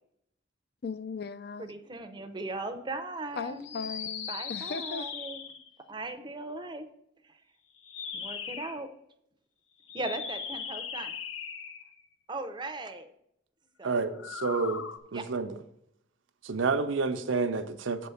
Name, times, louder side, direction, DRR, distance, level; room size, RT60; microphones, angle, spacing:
voice 1, 0.8-1.7 3.3-5.1, left 5 dB, 50° left, 0.4 m, -38 dB
voice 2, 1.6-3.7 4.3-5.4 5.9-6.9 8.1-8.9 9.9-11.1 12.3-13.1 13.8-14.3 15.1-15.2, right 2 dB, 25° right, 0.6 m, -38 dB
sound 1, 3.6-5.7 7.8-8.8 9.8-12.0 14.1-15.0, left 7 dB, 85° left, 0.7 m, -39 dB
voice 3, 13.8-14.8 15.1-15.6 16.4-18.1, right 4 dB, 80° right, 0.7 m, -29 dB
7.1 x 4.6 x 6.9 m
head